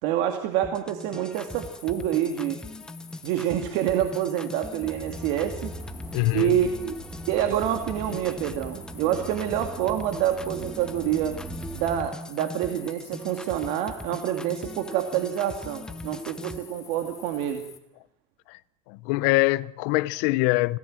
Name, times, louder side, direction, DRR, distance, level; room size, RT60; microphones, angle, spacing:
voice 1, 0.0-2.6 3.2-5.7 6.3-6.9 7.3-11.4 11.7-17.6, right 10 dB, 65° right, 2.4 m, -27 dB
sound 1, 0.6-16.6, left 2 dB, 5° left, 1.0 m, -41 dB
sound 2, 1.3-17.8, left 8 dB, 30° left, 3.0 m, -49 dB
sound 3, 4.8-12.1, right 3 dB, 10° right, 1.5 m, -41 dB
voice 2, 6.1-6.6 18.5-18.6 18.9-20.8, left 20 dB, 70° left, 0.9 m, -24 dB
25.0 x 18.0 x 7.8 m
cardioid pair, 150°, 12 cm